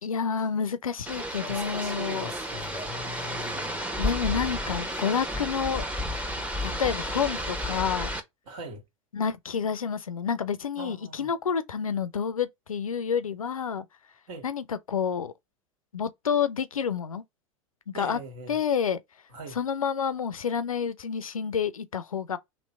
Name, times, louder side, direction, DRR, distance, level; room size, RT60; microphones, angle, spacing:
voice 1, 0.0-2.3 4.0-5.8 6.8-8.1 9.1-13.8 14.4-15.3 15.9-17.2 17.9-18.2 18.5-19.0 19.5-22.4, left 7 dB, 90° left, 0.5 m, -29 dB
sound 1, 1.1-8.2, equal, 10° right, 0.9 m, -32 dB
voice 2, 1.5-3.8 8.5-8.8 10.8-11.3 14.3-14.5 17.9-18.6 19.3-19.6, right 1 dB, 65° right, 1.8 m, -41 dB
3.1 x 3.1 x 4.0 m
hypercardioid pair, 85°, 17 cm